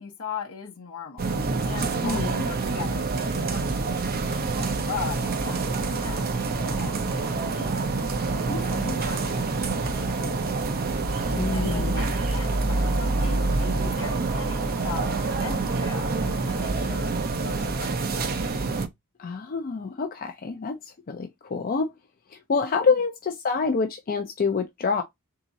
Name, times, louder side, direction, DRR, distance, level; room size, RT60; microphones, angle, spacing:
voice 1, 0.0-6.3 6.6-7.7 8.3-10.5 11.5-18.4, left 6 dB, 65° left, 0.8 m, -39 dB
sound 1, 1.2-18.9, right 3 dB, 45° right, 0.6 m, -27 dB
sound 2, 5.2-16.7, right 4 dB, 85° right, 0.7 m, -42 dB
voice 2, 8.5-8.9 11.4-12.1 19.2-21.9 22.3-25.0, left 5 dB, 40° left, 0.5 m, -27 dB
3.6 x 2.8 x 3.9 m
head